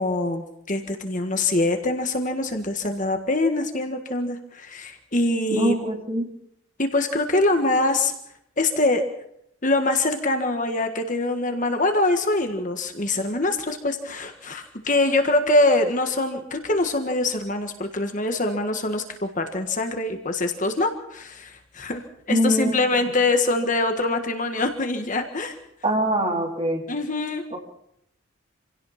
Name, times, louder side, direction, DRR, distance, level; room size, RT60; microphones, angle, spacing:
voice 1, 0.0-5.7 6.8-8.1 8.6-9.0 9.6-25.6 26.9-27.4, left 2 dB, 35° left, 6 dB, 1.7 m, -24 dB
voice 2, 5.5-6.3 22.3-22.7 25.8-26.8 27.5-27.6, right 1 dB, 25° right, 1 dB, 3.7 m, -23 dB
26.5 x 17.0 x 5.9 m, 0.75 s
head